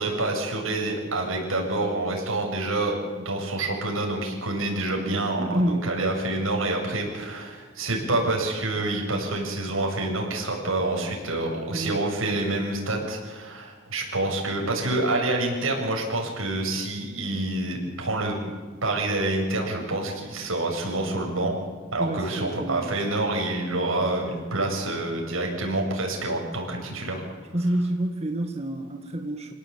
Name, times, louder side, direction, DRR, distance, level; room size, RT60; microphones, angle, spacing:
voice 1, 0.0-18.4 18.8-21.6 21.9-27.2, right 2 dB, 80° right, 0 dB, 7.7 m, -27 dB
voice 2, 5.0-5.9 11.7-12.0 22.0-22.9 27.5-29.5, right 1 dB, 30° right, 3 dB, 1.8 m, -28 dB
28.5 x 18.0 x 8.9 m, 1.5 s
head